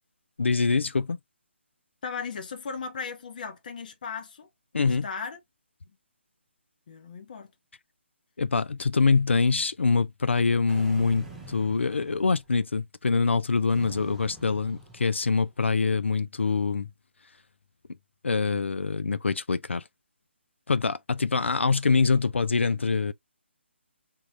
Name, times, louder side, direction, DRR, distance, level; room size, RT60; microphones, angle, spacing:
voice 1, 0.4-1.2 4.7-5.0 8.4-16.9 18.2-19.8 20.7-23.1, left 4 dB, 70° left, 0.3 m, -24 dB
voice 2, 2.0-4.5 4.8-5.4 6.9-7.5, left 5 dB, 45° left, 0.7 m, -37 dB
sound 1, 10.7-12.6 13.7-15.5, right 2 dB, 5° right, 0.6 m, -46 dB
3.5 x 2.3 x 2.9 m
figure-of-eight pair, 140°, 7 cm